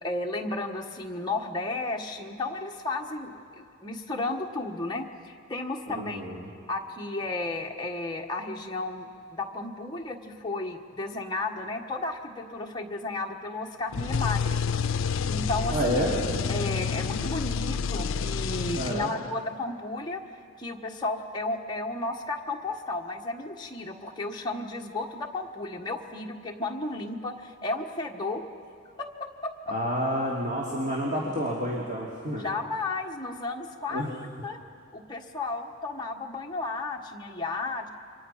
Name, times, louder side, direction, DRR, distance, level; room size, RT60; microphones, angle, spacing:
voice 1, 0.0-6.2 6.7-9.1 9.3-14.6 15.0-16.0 16.5-20.2 20.6-28.4 29.0-29.5 32.4-34.2 34.4-34.6 34.9-37.9, left 2 dB, 20° left, 0 dB, 1.4 m, -33 dB
voice 2, 5.9-6.5 15.7-16.2 18.7-19.1 29.7-32.5 33.9-34.1, equal, 35° right, -4 dB, 2.8 m, -29 dB
sound 1, 13.9-19.4, left 5 dB, 80° left, 0.5 m, -29 dB
28.5 x 24.5 x 5.7 m, 2.3 s
head